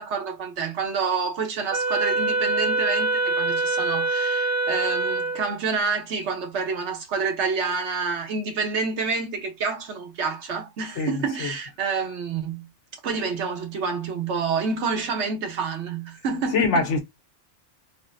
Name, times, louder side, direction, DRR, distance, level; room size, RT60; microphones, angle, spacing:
voice 1, 0.0-12.7 13.0-16.8, right 5 dB, 80° right, 1.2 m, -28 dB
Wind instrument woodwind instrument, 1.7-5.5, right 2 dB, 60° right, 0.9 m, -24 dB
voice 2, 11.0-11.5 16.5-17.0, left 3 dB, 85° left, 1.2 m, -23 dB
3.9 x 2.1 x 2.6 m
omnidirectional pair, 1.2 m